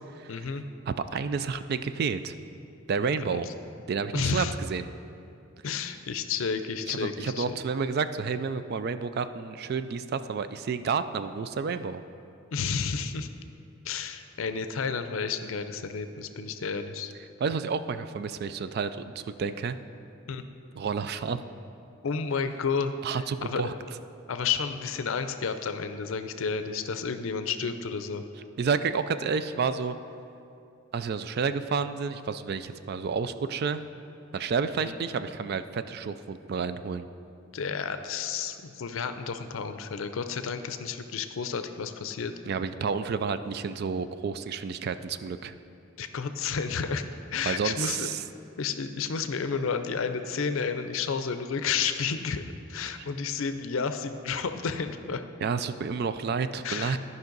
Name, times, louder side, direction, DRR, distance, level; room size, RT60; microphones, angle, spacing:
voice 1, 0.3-0.6 3.3-3.4 4.1-4.5 5.6-7.6 12.5-13.3 13.8-17.1 20.3-20.4 22.0-23.6 24.3-28.2 34.8-35.0 37.5-42.3 46.0-47.0 47.3-48.1 48.6-52.4 52.7-55.2 56.6-57.0, left 5 dB, 75° left, 9 dB, 0.5 m, -31 dB
voice 2, 0.9-2.3 2.9-3.5 3.9-4.9 6.9-12.0 17.4-19.8 20.7-21.4 23.0-23.7 28.6-30.0 30.9-33.8 34.3-37.1 42.5-45.6 47.5-48.2 53.0-53.1 55.4-57.0, right 5 dB, 50° right, 12 dB, 0.3 m, -30 dB
13.5 x 5.4 x 3.9 m, 2.7 s
head